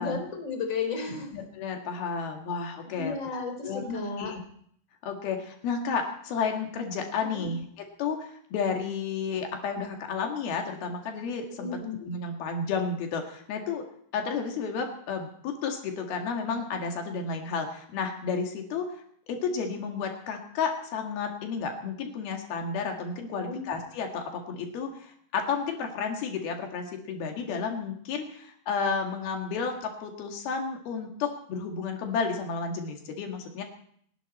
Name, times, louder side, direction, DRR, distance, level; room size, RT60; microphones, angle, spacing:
voice 1, 0.0-1.3 3.0-4.3 7.3-7.5 11.6-12.0 23.4-23.6, left 4 dB, 20° left, 4 dB, 3.4 m, -33 dB
voice 2, 1.3-4.4 5.0-13.9 14.1-19.0 19.3-33.6, left 5 dB, 85° left, 3 dB, 3.9 m, -32 dB
29.0 x 11.5 x 4.3 m, 0.65 s
omnidirectional pair, 4.2 m